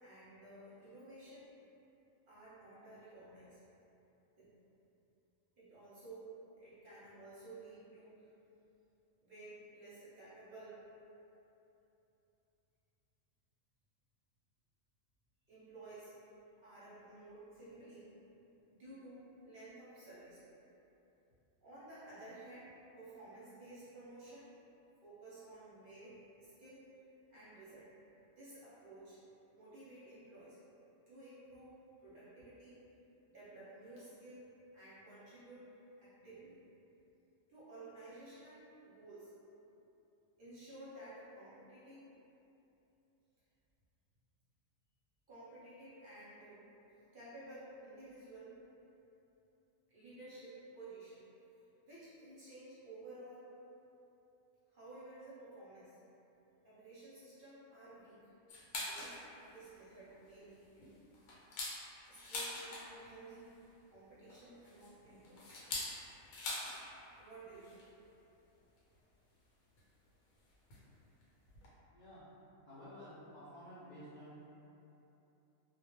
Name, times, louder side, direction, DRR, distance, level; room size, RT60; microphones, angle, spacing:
voice 1, 0.0-1.5 2.3-3.6 4.4-4.5 5.6-6.3 6.6-8.2 9.2-10.8 15.5-16.1 16.6-18.1 18.7-20.4 21.6-24.5 25.0-26.9 27.3-27.9 28.4-29.2 29.5-30.6 31.1-31.7 32.0-32.8 33.3-34.5 34.7-35.7 36.0-36.6 37.5-39.3 40.4-42.1 45.3-46.7 47.1-48.5 49.9-51.2 51.9-53.5 54.7-56.0 56.6-58.2 58.7-60.9 62.1-63.5 63.9-65.6 67.2-67.9, right 2 dB, 50° right, -12 dB, 0.7 m, -54 dB
sound 1, 58.5-59.2 59.6-59.7 60.1-60.3 60.8-63.1 64.3-66.9 67.1-67.2 67.5-67.8 68.8-68.9 69.8-69.9 70.7-70.9 71.2-71.3 71.5-71.7, left 2 dB, 85° left, 1.0 m, -43 dB
voice 2, 71.9-72.2 72.7-74.4, equal, 70° left, -12 dB, 0.4 m, -52 dB
2.2 x 2.1 x 2.9 m, 2.9 s
omnidirectional pair, 1.4 m